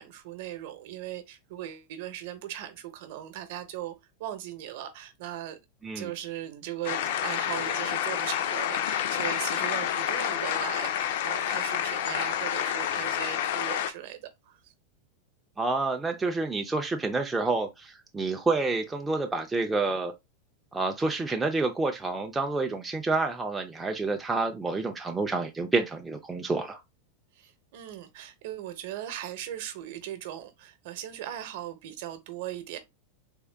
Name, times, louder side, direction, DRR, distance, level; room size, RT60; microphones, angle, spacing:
voice 1, 0.0-3.9 4.2-5.6 5.9-14.7 27.3-32.8, right 12 dB, 55° right, 0.7 m, -38 dB
sound 1, 6.9-13.9, left 10 dB, 60° left, 0.4 m, -29 dB
voice 2, 15.6-20.1 20.7-26.8, right 3 dB, 10° right, 0.3 m, -28 dB
3.6 x 2.2 x 3.3 m
supercardioid pair, 165°, 0 cm